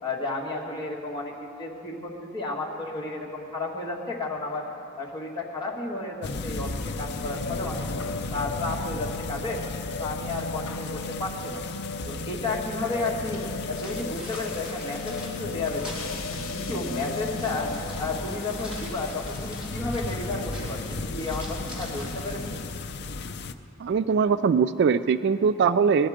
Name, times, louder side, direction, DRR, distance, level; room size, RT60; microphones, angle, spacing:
voice 1, 0.0-4.7 5.0-9.6 10.0-11.6 12.0-16.2 16.5-22.6, left 2 dB, 20° left, -4 dB, 2.0 m, -32 dB
sound 1, 6.2-23.5, left 3 dB, 55° left, 0.5 m, -36 dB
sound 2, 6.7-21.1, left 3 dB, 75° left, 1.0 m, -37 dB
sound 3, 13.7-22.6, equal, 5° right, 3.7 m, -43 dB
voice 2, 23.8-26.1, right 6 dB, 55° right, 13 dB, 0.3 m, -21 dB
20.0 x 11.5 x 5.1 m, 2.7 s
head